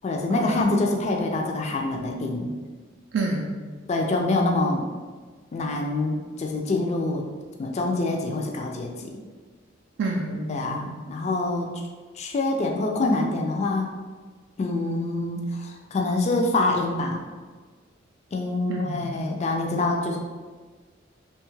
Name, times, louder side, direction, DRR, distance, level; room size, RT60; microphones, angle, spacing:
voice 1, 0.0-2.5 3.9-4.9 5.5-7.2 7.6-9.1 10.5-11.8 12.1-13.9 14.6-17.2 18.3-20.2, left 2 dB, 35° left, 2 dB, 0.3 m, -25 dB
voice 2, 3.1-3.6 10.0-11.0 18.7-19.1, right 2 dB, 60° right, -2 dB, 0.3 m, -29 dB
2.8 x 2.3 x 3.1 m, 1.4 s
head